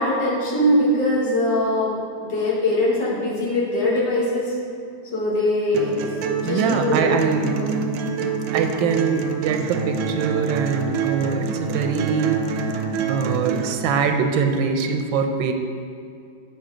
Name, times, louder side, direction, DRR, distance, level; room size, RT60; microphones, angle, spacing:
voice 1, 0.0-4.6 5.1-7.1 7.4-7.7, left 1 dB, 65° left, -5 dB, 2.1 m, -22 dB
sound 1, 5.7-13.7, right 6 dB, 70° right, 1.0 m, -26 dB
voice 2, 6.4-7.5 8.5-12.4 13.1-15.5, right 5 dB, 85° right, 6 dB, 1.3 m, -23 dB
7.9 x 5.8 x 3.7 m, 2.4 s
omnidirectional pair, 2.1 m